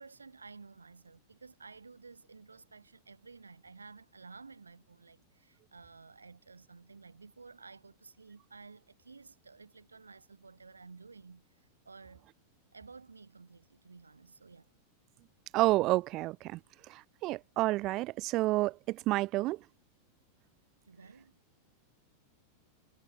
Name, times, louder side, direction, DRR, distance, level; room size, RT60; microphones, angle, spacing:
voice 1, 0.0-12.2 12.7-14.7 20.9-21.4, right 4 dB, 75° right, 8.0 m, -53 dB
voice 2, 15.5-16.6 16.9-19.6, right 18 dB, 40° right, 0.3 m, -30 dB
figure-of-eight pair, 90°, 0 cm